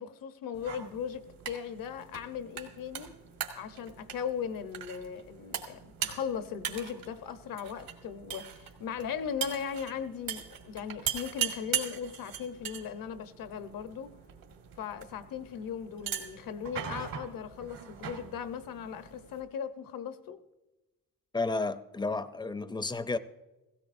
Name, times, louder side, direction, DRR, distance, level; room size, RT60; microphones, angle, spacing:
voice 1, 0.0-3.1 3.5-14.1 14.8-20.4, left 7 dB, 75° left, 1.0 m, -38 dB
sound 1, 0.5-19.4, right 9 dB, 80° right, 2.0 m, -40 dB
voice 2, 21.3-23.2, left 3 dB, 15° left, 0.5 m, -32 dB
17.0 x 17.0 x 2.6 m
cardioid pair, 135°, 34 cm